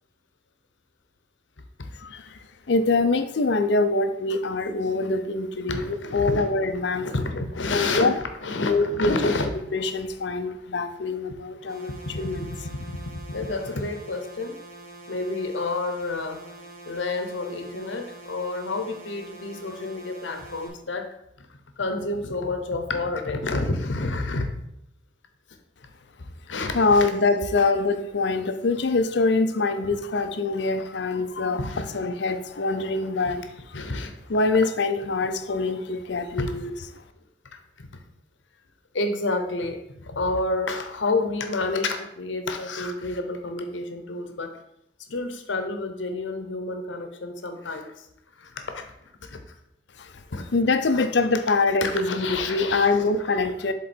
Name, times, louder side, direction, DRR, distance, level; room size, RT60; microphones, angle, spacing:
voice 1, 2.7-7.1 7.7-8.1 8.6-9.3 9.7-12.5 26.7-33.4 34.3-36.7 50.5-53.7, left 3 dB, 65° left, 9 dB, 0.5 m, -24 dB
voice 2, 5.7-6.5 6.7-9.5 12.1-12.5 12.9-13.0 13.3-14.6 15.1-16.4 16.9-21.5 21.8-24.5 26.5-27.1 27.6-27.7 30.1-30.2 31.6-32.0 33.2-33.4 33.7-34.1 36.4-36.5 37.5-38.0 38.9-44.6 45.1-48.1 48.4-49.4 50.3-50.5 50.8-51.1 51.8-53.3 53.7-53.8, left 3 dB, 80° left, 6 dB, 0.9 m, -30 dB
sound 1, 11.7-20.7, right 2 dB, 50° right, 1.5 m, -45 dB
7.5 x 3.8 x 4.3 m, 0.79 s
head